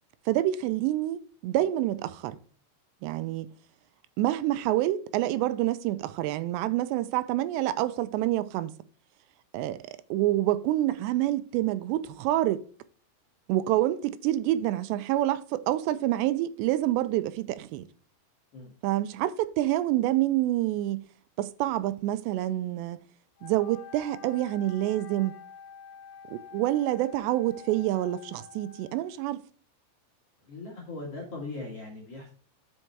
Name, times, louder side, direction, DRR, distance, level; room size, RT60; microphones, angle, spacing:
voice 1, 0.3-2.4 3.0-3.5 4.2-8.7 9.5-9.8 10.1-12.6 13.5-17.9 18.8-21.0 21.4-23.0 23.4-25.4 26.3-29.4, right 14 dB, 85° right, 2.7 m, -27 dB
Wind instrument woodwind instrument, 23.4-29.3, left 6 dB, 80° left, 2.9 m, -48 dB
voice 2, 30.4-32.3, left 3 dB, 50° left, 2.1 m, -39 dB
7.7 x 5.4 x 4.5 m
omnidirectional pair, 5.0 m